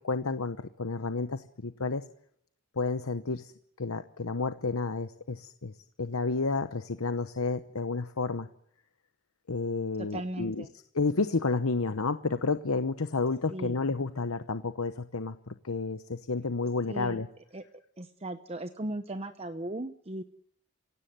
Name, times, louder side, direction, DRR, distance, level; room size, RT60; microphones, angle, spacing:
voice 1, 0.1-2.1 2.8-3.5 3.8-5.7 6.0-8.5 9.5-10.6 10.9-17.3, left 3 dB, 70° left, 10 dB, 0.9 m, -31 dB
voice 2, 10.1-10.7 13.5-13.8 16.9-17.2 17.5-17.6 18.0-20.2, right 1 dB, 25° right, 9 dB, 0.9 m, -37 dB
26.5 x 17.0 x 9.4 m, 0.72 s
head